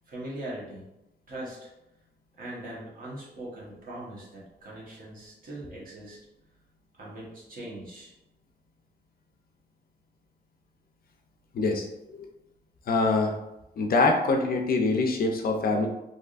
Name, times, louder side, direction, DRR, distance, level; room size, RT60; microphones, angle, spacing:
voice 1, 0.1-0.8 1.3-1.7 2.3-6.3 6.9-8.1, right 1 dB, 55° right, -5 dB, 1.0 m, -40 dB
voice 2, 11.5-12.3 12.9-13.3 13.8-15.9, left 3 dB, 55° left, 3 dB, 0.4 m, -24 dB
3.4 x 2.6 x 2.4 m, 0.91 s
wide cardioid pair, 170°, 18 cm